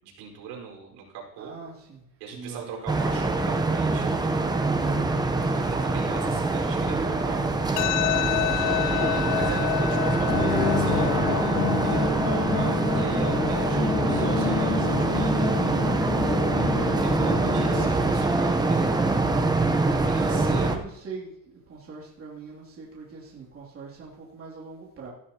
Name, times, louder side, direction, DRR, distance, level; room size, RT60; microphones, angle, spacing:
voice 1, 0.0-1.6 2.2-4.1 5.5-7.4 8.5-15.5 17.0-19.0 19.8-20.8, right 6 dB, 65° right, 0 dB, 5.1 m, -40 dB
voice 2, 1.4-2.0 2.3-2.8 4.7-5.1 13.4-14.3 19.9-25.1, right 4 dB, 30° right, -5 dB, 3.0 m, -41 dB
sound 1, 2.9-20.8, right 3 dB, 10° right, 0.9 m, -24 dB
sound 2, 7.8-20.7, left 19 dB, 50° left, 0.6 m, -32 dB
sound 3, 10.3-17.9, left 4 dB, 30° left, 2.5 m, -28 dB
17.0 x 11.5 x 3.0 m, 0.80 s
cardioid pair, 130°, 42 cm